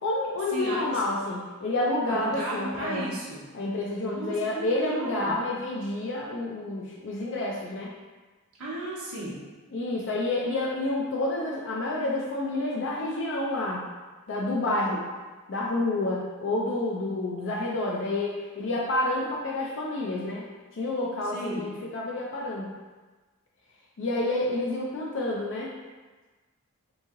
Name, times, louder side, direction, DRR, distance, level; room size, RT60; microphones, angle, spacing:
voice 1, 0.0-3.1 3.5-7.9 9.7-13.8 14.3-15.1 15.5-22.7 24.0-25.7, left 2 dB, 55° left, -4 dB, 0.4 m, -29 dB
voice 2, 2.1-3.5 4.1-5.4 8.6-9.4 21.3-21.7, right 1 dB, 90° right, -7 dB, 0.8 m, -34 dB
3.0 x 2.7 x 3.6 m, 1.3 s
head